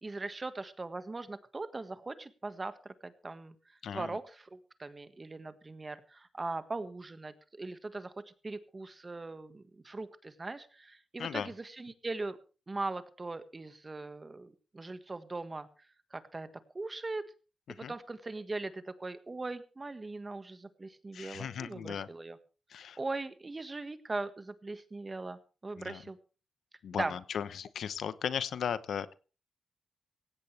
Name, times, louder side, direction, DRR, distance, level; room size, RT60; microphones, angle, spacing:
voice 1, 0.0-3.5 3.9-12.4 12.7-15.7 16.1-16.5 16.7-17.2 17.8-22.4 23.0-26.2 26.9-27.1, right 3 dB, 25° right, 11 dB, 1.6 m, -40 dB
voice 2, 3.8-4.2 11.2-11.5 17.7-17.9 21.1-22.1 22.7-23.0 25.8-26.0 26.8-29.1, left 8 dB, 75° left, 15 dB, 0.9 m, -37 dB
17.0 x 16.5 x 3.4 m, 0.34 s
cardioid pair, 100°, 0 cm